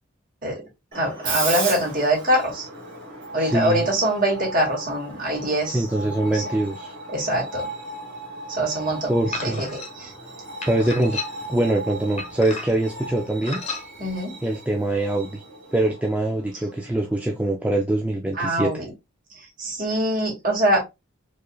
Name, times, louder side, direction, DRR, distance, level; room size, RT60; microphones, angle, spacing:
voice 1, 0.9-2.7 3.3-5.8 6.3-6.4 7.1-7.7 8.5-10.1 14.0-14.4 18.4-18.9 19.3-20.8, right 1 dB, 40° right, 2.0 m, -24 dB
Screech, 0.9-17.5, right 3 dB, 65° right, 2.0 m, -36 dB
voice 2, 3.4-3.9 5.7-6.9 9.1-9.6 10.7-11.2 11.5-13.6 14.4-15.4 15.7-18.7, right 1 dB, 5° right, 0.3 m, -23 dB
sound 1, 9.3-9.9 10.6-11.6 12.2-12.9 13.4-13.8, left 3 dB, 30° left, 1.0 m, -33 dB
4.5 x 3.1 x 2.3 m
head